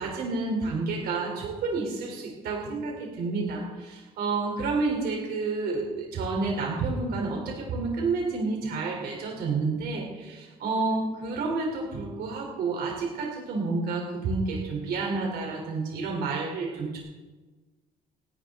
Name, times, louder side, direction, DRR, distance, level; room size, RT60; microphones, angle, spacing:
voice 1, 0.0-17.0, right 3 dB, 70° right, 0 dB, 3.4 m, -30 dB
28.5 x 9.7 x 3.7 m, 1.3 s
cardioid pair, 110°, 17 cm